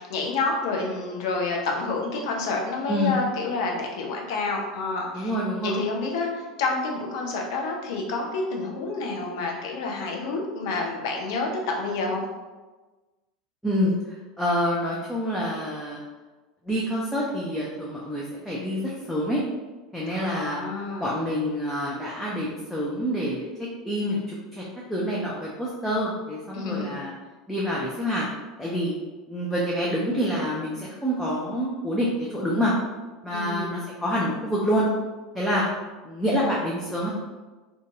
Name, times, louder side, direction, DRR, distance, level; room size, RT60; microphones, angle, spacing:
voice 1, 0.0-5.3 5.6-12.2 20.1-21.1 26.5-27.0 33.3-33.9, left 3 dB, 55° left, 0 dB, 0.5 m, -29 dB
voice 2, 5.1-5.8 13.6-13.9 14.4-16.0 16.7-19.4 19.9-20.6 21.0-23.5 23.8-24.6 24.9-27.1 27.5-28.3 28.6-28.9 29.3-32.7 33.2-34.9 35.3-35.6 36.0-37.1, equal, ahead, -6 dB, 0.4 m, -27 dB
2.5 x 2.3 x 2.7 m, 1.2 s
figure-of-eight pair, 80°, 3 cm